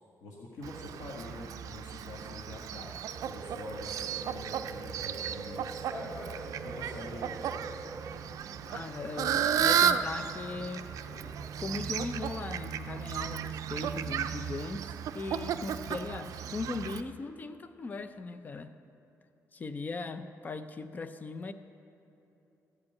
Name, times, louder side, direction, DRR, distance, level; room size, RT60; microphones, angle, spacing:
voice 1, 0.2-5.8 6.6-7.4, left 2 dB, 90° left, -3 dB, 1.4 m, -45 dB
Fowl, 0.6-17.0, right 8 dB, 75° right, 0.4 m, -34 dB
sound 1, 3.1-8.1, right 3 dB, 25° right, 1.3 m, -44 dB
sound 2, 4.4-11.9, left 1 dB, 65° left, 2.9 m, -50 dB
voice 2, 8.7-10.9 11.6-18.7 19.5-21.5, left 3 dB, 30° left, 10 dB, 0.5 m, -39 dB
14.5 x 5.3 x 8.3 m, 2.9 s
cardioid pair, 130°, 6 cm